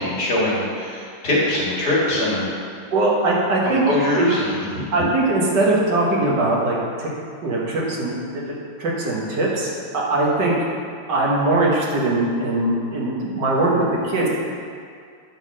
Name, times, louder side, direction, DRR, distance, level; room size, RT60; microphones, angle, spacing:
voice 1, 0.0-2.5 3.7-4.7, left 1 dB, 50° left, -6 dB, 2.2 m, -22 dB
voice 2, 2.9-3.8 4.2-4.3 4.9-7.1 7.4-9.7 9.9-10.5 11.1-14.3, right 2 dB, 55° right, -4 dB, 1.8 m, -21 dB
8.8 x 3.9 x 6.3 m, 2.2 s
omnidirectional pair, 2.4 m